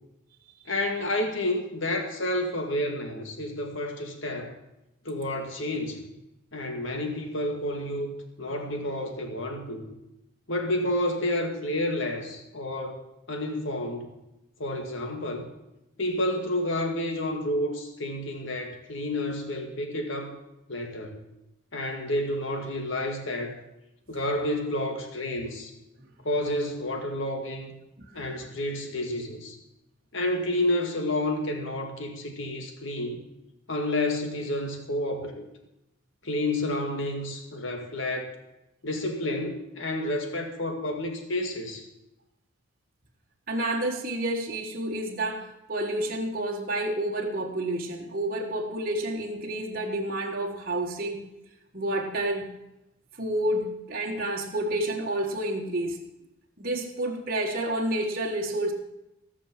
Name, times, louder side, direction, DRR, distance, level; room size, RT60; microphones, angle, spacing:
voice 1, 0.7-4.5 5.0-6.1 6.5-8.1 8.4-9.9 10.5-13.0 13.3-14.1 14.6-15.5 16.0-20.4 20.7-21.2 21.7-23.6 24.1-25.7 26.2-27.8 28.1-29.6 30.1-33.2 33.7-35.5 36.2-38.3 38.8-41.8, left 1 dB, 70° left, 4 dB, 2.2 m, -30 dB
voice 2, 43.5-51.2 51.7-52.5 53.2-56.0 56.6-58.7, right 1 dB, 45° right, -1 dB, 1.7 m, -29 dB
17.5 x 6.2 x 7.7 m, 0.91 s
head